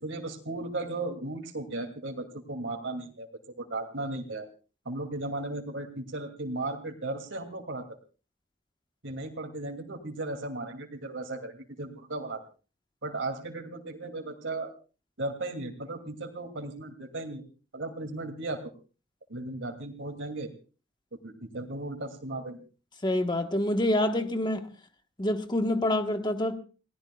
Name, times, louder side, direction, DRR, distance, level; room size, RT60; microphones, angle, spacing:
voice 1, 0.0-3.3 3.6-4.5 4.8-8.0 9.0-12.4 13.0-14.7 15.2-17.4 17.7-18.7 19.3-20.5 21.2-22.6, right 2 dB, 85° right, 2.6 m, -36 dB
voice 2, 23.0-24.7 25.2-26.6, left 1 dB, 25° left, 1.3 m, -26 dB
29.0 x 18.0 x 2.4 m
head